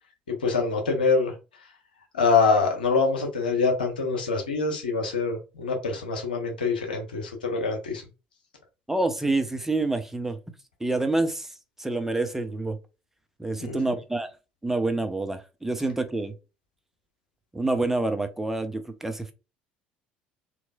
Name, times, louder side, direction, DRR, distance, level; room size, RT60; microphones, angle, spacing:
voice 1, 0.3-1.3 2.1-8.0 13.7-13.9, left 4 dB, 85° left, 0.9 m, -25 dB
voice 2, 8.9-10.4 10.8-11.5 11.8-12.8 13.4-14.3 14.6-16.3 17.5-19.3, right 2 dB, 5° right, 0.6 m, -27 dB
3.7 x 3.0 x 2.3 m
hypercardioid pair, 65°, 5 cm